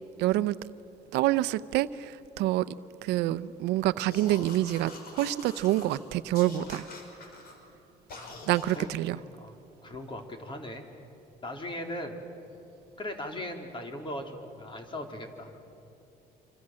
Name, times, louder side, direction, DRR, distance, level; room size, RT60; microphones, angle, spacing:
voice 1, 0.2-0.6 1.1-2.6 3.0-6.9 8.5-9.2, right 15 dB, 90° right, 15 dB, 0.7 m, -27 dB
sound 1, 4.1-6.0 6.3-7.6 8.1-8.9, left 3 dB, 65° left, 5.7 m, -45 dB
voice 2, 8.8-10.8 11.4-12.2 13.0-15.6, left 1 dB, 30° left, 4 dB, 3.8 m, -39 dB
27.5 x 26.0 x 7.7 m, 2.8 s
cardioid pair, 110°, 17 cm